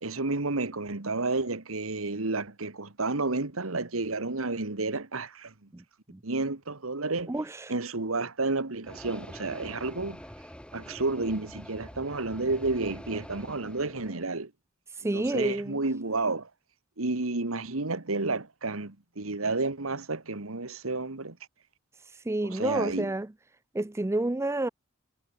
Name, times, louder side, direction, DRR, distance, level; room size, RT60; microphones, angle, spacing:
voice 1, 0.0-5.5 6.2-7.4 7.7-10.2 10.7-14.5 15.1-16.5 17.0-21.4 22.4-23.1, right 3 dB, 90° right, 1.8 m, -31 dB
voice 2, 7.3-7.7 15.0-15.8 22.3-23.3 23.7-24.7, right 2 dB, 15° right, 0.4 m, -29 dB
sound 1, 8.8-14.3, equal, 5° left, 7.1 m, -45 dB
head